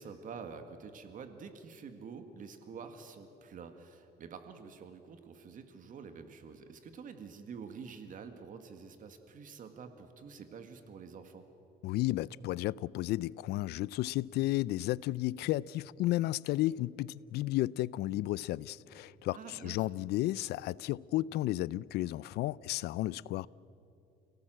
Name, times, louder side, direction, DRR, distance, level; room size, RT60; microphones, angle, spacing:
voice 1, 0.0-11.5 19.3-19.9, right 5 dB, 50° right, 1.9 m, -48 dB
voice 2, 11.8-23.5, left 16 dB, 75° left, 0.5 m, -33 dB
29.5 x 17.5 x 7.8 m
cardioid pair, 110°, 17 cm